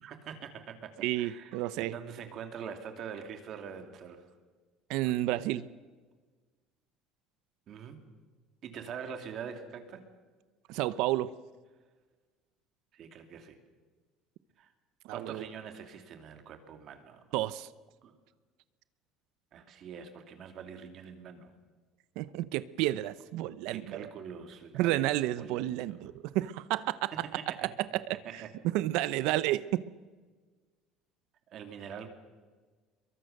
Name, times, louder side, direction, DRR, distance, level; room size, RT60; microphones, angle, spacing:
voice 1, 0.0-4.3 7.7-8.1 8.6-10.1 12.9-13.6 14.6-14.7 15.1-17.2 18.0-18.1 19.5-21.5 23.7-26.0 27.1-27.7 28.1-28.5 31.5-32.1, right 7 dB, 45° right, 7 dB, 2.4 m, -44 dB
voice 2, 1.0-1.9 4.9-5.7 10.7-11.3 15.1-15.4 17.3-17.7 22.2-24.0 24.7-27.1 27.6-28.0 28.3-29.8, right 15 dB, 70° right, 16 dB, 0.7 m, -31 dB
24.0 x 23.0 x 6.7 m, 1.4 s
cardioid pair, 150°, 0 cm